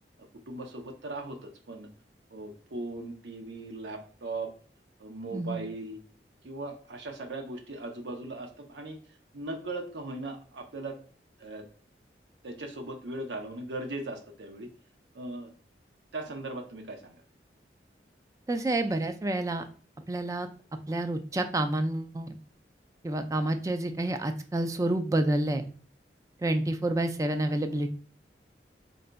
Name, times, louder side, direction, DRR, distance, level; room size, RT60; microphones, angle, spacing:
voice 1, 0.2-1.9 2.3-4.5 5.0-6.0 6.4-9.0 9.3-11.0 11.4-11.6 12.4-14.7 15.1-15.5 16.1-17.2, right 2 dB, 85° right, 4 dB, 0.7 m, -38 dB
voice 2, 5.3-5.6 18.5-19.7 20.1-20.5 20.9-22.4 23.0-25.7 26.4-27.9, right 1 dB, 20° right, 7 dB, 0.3 m, -29 dB
4.1 x 3.8 x 2.2 m, 0.43 s
head